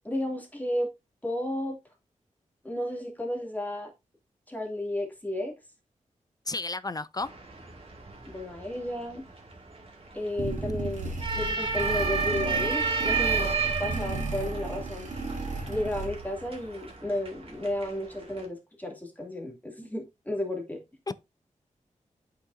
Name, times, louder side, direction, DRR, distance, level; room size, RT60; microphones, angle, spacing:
voice 1, 0.0-0.9 1.2-1.8 2.6-3.9 4.5-5.5 8.2-9.2 10.1-15.1 15.7-20.8, left 1 dB, 10° left, 2.6 m, -33 dB
voice 2, 6.5-7.3 10.6-10.7 21.1-21.2, left 3 dB, 30° left, 0.4 m, -33 dB
sound 1, 7.2-18.5, right 5 dB, 45° right, 2.3 m, -33 dB
sound 2, 10.4-16.5, right 2 dB, 65° right, 2.5 m, -34 dB
8.5 x 5.7 x 2.7 m
wide cardioid pair, 85°, 13 cm